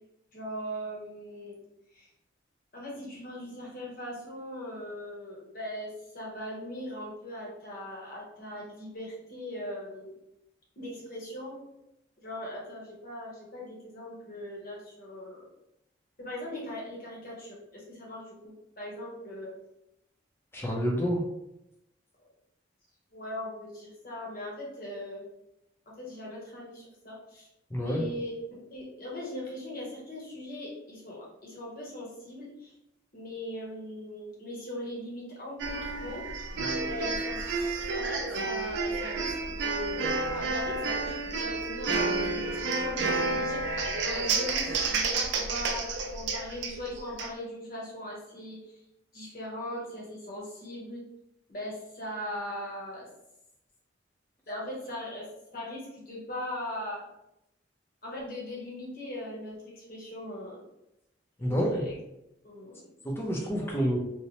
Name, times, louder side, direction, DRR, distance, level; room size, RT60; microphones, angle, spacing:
voice 1, 0.3-1.6 1.9-2.1 2.7-10.1 10.8-11.6 12.2-15.5 16.2-19.5 23.1-25.3 26.0-27.5 27.8-32.7 33.1-36.2 36.8-37.4 37.9-48.8 49.1-51.0 51.5-53.1 54.5-55.3 55.5-57.0 58.0-60.6 61.4-61.6 61.8-62.0 62.4-62.9 63.6-63.9, left 1 dB, 50° left, -4 dB, 0.9 m, -39 dB
voice 2, 20.5-21.2 27.7-28.1 61.4-61.9 63.0-64.0, equal, 15° left, -1 dB, 0.4 m, -28 dB
sound 1, 35.6-47.3, right 3 dB, 70° right, 0.4 m, -30 dB
2.7 x 2.0 x 2.8 m, 0.84 s
head